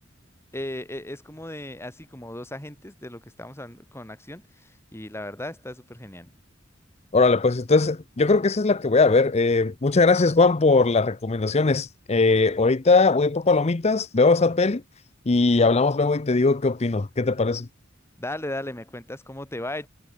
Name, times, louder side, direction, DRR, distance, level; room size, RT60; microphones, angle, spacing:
voice 1, 0.5-6.3 18.2-19.9, left 1 dB, 15° left, 3.2 m, -36 dB
voice 2, 7.1-14.8 15.3-17.7, left 3 dB, 35° left, 0.6 m, -20 dB
head